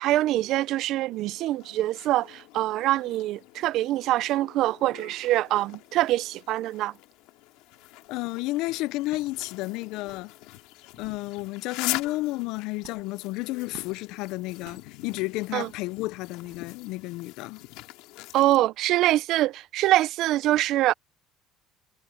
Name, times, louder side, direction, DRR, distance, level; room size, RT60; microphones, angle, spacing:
voice 1, 0.0-6.9 15.5-15.7 18.3-20.9, right 15 dB, 55° right, 0.4 m, -24 dB
sound 1, 1.1-18.6, left 19 dB, 90° left, 2.3 m, -42 dB
voice 2, 8.1-10.3 11.0-17.6, left 20 dB, 70° left, 0.4 m, -32 dB
sound 2, 8.1-8.3 9.0-9.4 9.7-9.8 10.0-10.3 10.8-11.3 11.9-12.2 12.8-14.0 14.6-14.9 15.5-15.9 16.4-16.6, right 22 dB, 80° right, 5.5 m, -52 dB
cardioid pair, 170°, 0 cm